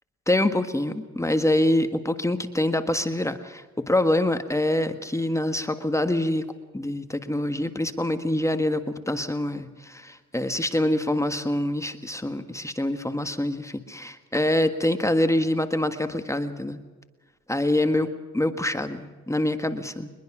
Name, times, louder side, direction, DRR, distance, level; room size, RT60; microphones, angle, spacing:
voice 1, 0.3-3.3 3.9-16.8 17.5-20.1, left 1 dB, 10° left, 8 dB, 1.6 m, -25 dB
23.0 x 21.5 x 6.1 m, 1.3 s
cardioid pair, 90°, 30 cm